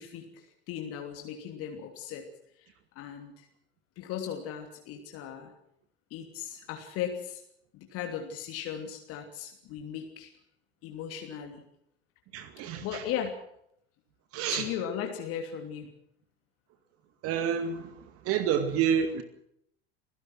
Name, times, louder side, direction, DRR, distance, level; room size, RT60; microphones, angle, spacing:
voice 1, 0.0-2.3 2.9-3.5 4.0-5.5 6.1-7.4 7.7-10.3 10.8-11.6 12.8-13.3 14.5-15.9, left 9 dB, 50° left, 4 dB, 3.0 m, -37 dB
voice 2, 12.3-13.1 14.3-14.7 17.2-19.2, right 8 dB, 45° right, 10 dB, 2.2 m, -29 dB
28.5 x 16.5 x 6.1 m, 0.73 s
figure-of-eight pair, 70°, 31 cm